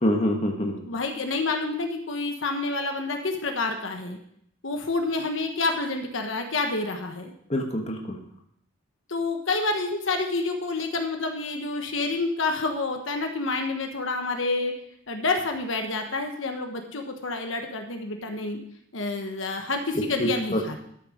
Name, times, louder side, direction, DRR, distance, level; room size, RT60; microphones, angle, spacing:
voice 1, 0.0-0.8 7.5-8.2 20.2-20.8, equal, 30° left, 2 dB, 1.3 m, -26 dB
voice 2, 0.7-4.2 4.6-7.3 9.1-14.8 15.1-18.6 18.9-20.8, left 3 dB, 75° left, 4 dB, 1.3 m, -28 dB
13.0 x 6.8 x 5.1 m, 0.70 s
head